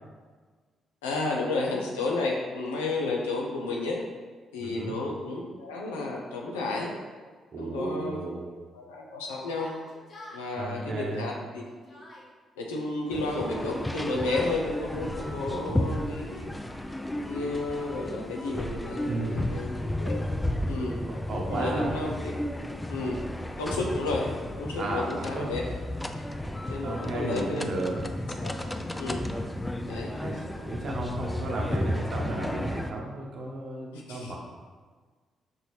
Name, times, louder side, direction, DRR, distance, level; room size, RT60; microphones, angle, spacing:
voice 1, 1.0-4.0 4.5-6.9 7.6-8.2 8.7-9.7 10.3-12.0 12.6-16.5 17.3-20.2 20.7-21.0 21.5-22.3 22.9-23.2 23.6-24.3 24.6-25.6 26.7-27.7 28.4-28.5 29.0-29.3 29.9-30.1 33.9-34.4, left 2 dB, 85° left, -1 dB, 0.5 m, -32 dB
voice 2, 4.6-4.9 7.5-8.5 10.6-11.2 15.3-15.8 19.1-19.5 21.3-21.9 24.8-25.5 26.8-28.0 30.2-34.4, right 2 dB, 60° right, -1 dB, 0.8 m, -34 dB
Yell, 9.5-10.4 11.3-12.3 13.3-14.6 15.5-16.4, left 1 dB, 60° left, 1.2 m, -47 dB
sound 1, 13.1-32.9, left 1 dB, 15° left, 0.4 m, -33 dB
5.4 x 2.6 x 3.2 m, 1.5 s
hypercardioid pair, 45°, 0 cm